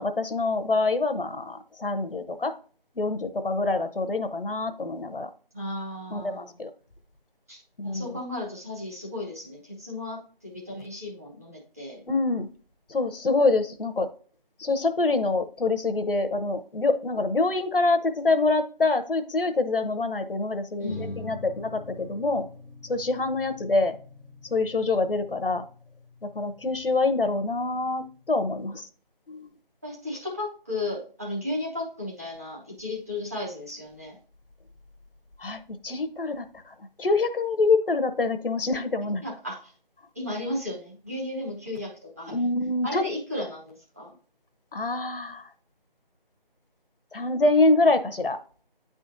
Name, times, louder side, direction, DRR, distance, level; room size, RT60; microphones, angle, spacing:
voice 1, 0.0-2.5 3.0-5.3 6.1-6.7 7.8-8.0 12.1-12.5 12.9-14.1 14.6-22.4 22.9-23.9 24.5-25.6 26.3-28.9 29.3-29.5 35.4-39.2 42.3-43.0 44.7-45.4 47.1-48.4, left 3 dB, 70° left, 9 dB, 0.9 m, -25 dB
voice 2, 5.5-6.6 7.5-12.0 20.8-21.5 29.8-34.2 39.2-39.7 40.1-42.5 42.8-44.1, left 1 dB, 15° right, -4 dB, 1.0 m, -35 dB
sound 1, 20.9-28.5, left 2 dB, 75° right, 1.8 m, -46 dB
9.8 x 3.7 x 2.6 m, 0.41 s
figure-of-eight pair, 170°, 29 cm